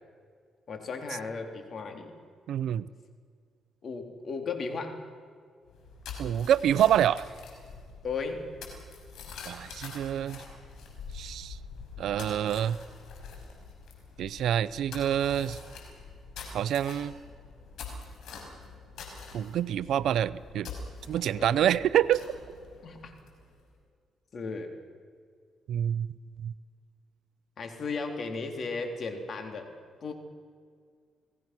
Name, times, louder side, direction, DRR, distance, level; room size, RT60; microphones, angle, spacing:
voice 1, 0.7-2.1 3.8-5.0 8.0-8.5 21.4-21.6 22.8-23.1 24.3-24.7 27.6-29.7 30.0-30.1, left 4 dB, 50° left, 4 dB, 3.6 m, -35 dB
voice 2, 2.5-2.9 6.2-7.3 9.5-10.4 11.1-11.6 12.0-12.8 14.2-15.6 16.5-17.1 19.3-20.7 21.1-22.4 25.7-26.1 26.4-26.5, right 10 dB, 75° right, 17 dB, 0.7 m, -27 dB
sound 1, 5.7-23.6, left 4 dB, 80° left, 5.5 m, -45 dB
29.5 x 19.0 x 6.2 m, 2.1 s
cardioid pair, 90°, 0 cm